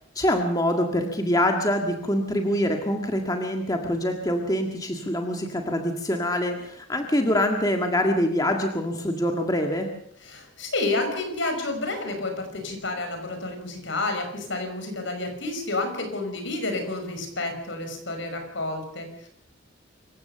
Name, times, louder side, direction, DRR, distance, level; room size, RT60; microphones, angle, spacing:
voice 1, 0.2-9.9, left 1 dB, 20° left, 3 dB, 1.8 m, -25 dB
voice 2, 10.2-19.3, left 2 dB, 65° left, 6 dB, 5.5 m, -30 dB
26.0 x 15.5 x 6.9 m, 0.69 s
head